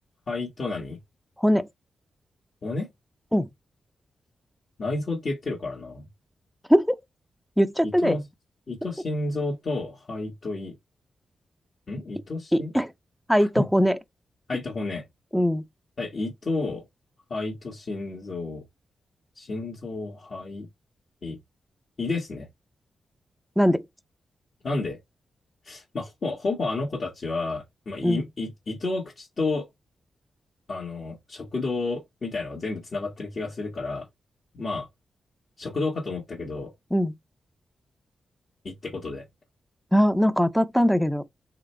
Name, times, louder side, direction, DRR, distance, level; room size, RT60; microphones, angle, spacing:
voice 1, 0.3-1.0 2.6-2.9 4.8-6.1 7.8-8.2 8.7-10.8 11.9-12.7 13.4-13.7 14.5-15.0 16.0-16.8 17.3-18.6 19.4-20.7 21.2-21.4 22.0-22.5 24.6-25.0 25.7-29.7 30.7-34.1 34.5-34.9 35.6-36.7 38.7-39.2, left 3 dB, 55° left, 1.6 m, -31 dB
voice 2, 7.6-8.2 12.5-12.9 13.3-14.0 15.3-15.6 23.6-23.8 28.0-28.2 36.9-37.1 39.9-41.2, equal, ahead, 0.5 m, -21 dB
3.8 x 3.3 x 3.3 m
cardioid pair, 70°, 0 cm